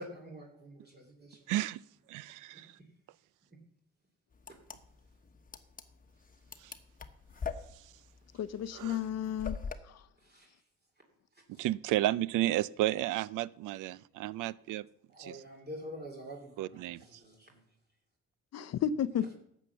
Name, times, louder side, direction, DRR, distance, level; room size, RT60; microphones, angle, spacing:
voice 1, 0.0-1.4 2.5-2.9 3.5-3.6 4.5-4.6 10.2-10.6 11.3-11.6 15.1-17.6, equal, 35° right, 2.7 m, -47 dB
voice 2, 1.5-1.8 2.1-2.7 6.6-6.7 7.8-7.9 8.7-9.0 11.5-14.9 15.2-15.4 16.6-17.0, right 15 dB, 90° right, 0.5 m, -32 dB
sound 1, 4.4-9.8, left 6 dB, 30° left, 1.1 m, -42 dB
voice 3, 8.4-9.6 9.9-10.0 18.5-19.3, left 9 dB, 60° left, 0.6 m, -32 dB
12.0 x 8.1 x 6.9 m
cardioid pair, 90°, 30 cm